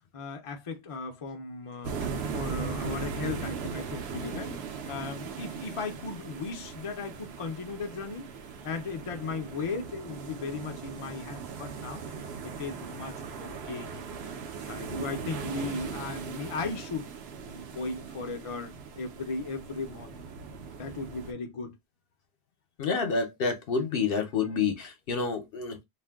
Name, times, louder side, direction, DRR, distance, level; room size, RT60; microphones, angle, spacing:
voice 1, 0.1-8.3 8.6-12.1 12.4-14.1 14.6-17.0 17.4-20.2 20.8-21.8, left 4 dB, 45° left, 0.4 m, -37 dB
sound 1, 1.8-21.3, right 5 dB, 70° right, 0.8 m, -39 dB
voice 2, 22.8-25.8, left 5 dB, 60° left, 0.9 m, -28 dB
2.5 x 2.1 x 3.4 m
omnidirectional pair, 1.1 m